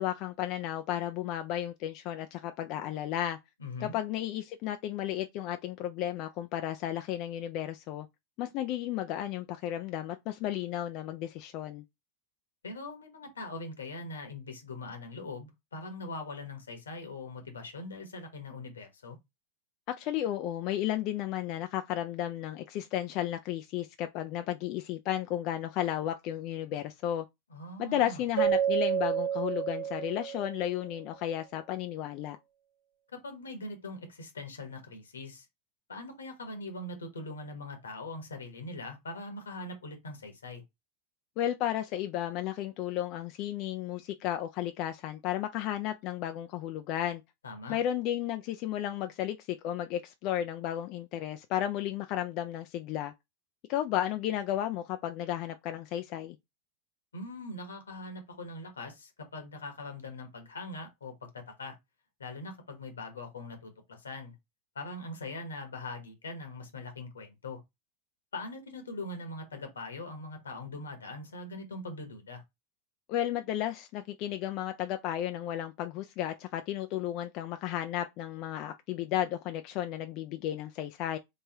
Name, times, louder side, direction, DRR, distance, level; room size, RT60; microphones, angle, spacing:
voice 1, 0.0-3.4 3.8-8.1 8.4-11.8 19.9-27.2 27.8-32.4 41.4-47.2 47.7-53.1 53.7-56.4 73.1-81.2, left 12 dB, 50° left, 0.3 m, -33 dB
voice 2, 3.6-3.9 12.6-19.2 27.5-28.2 33.1-35.4 35.9-40.6 47.4-47.8 57.1-61.7 62.2-64.3 64.7-67.6 68.3-72.4, left 2 dB, 90° left, 1.2 m, -42 dB
Keyboard (musical), 28.4-30.8, right 9 dB, 75° right, 0.8 m, -29 dB
3.4 x 3.2 x 2.8 m
hypercardioid pair, 95°, 0 cm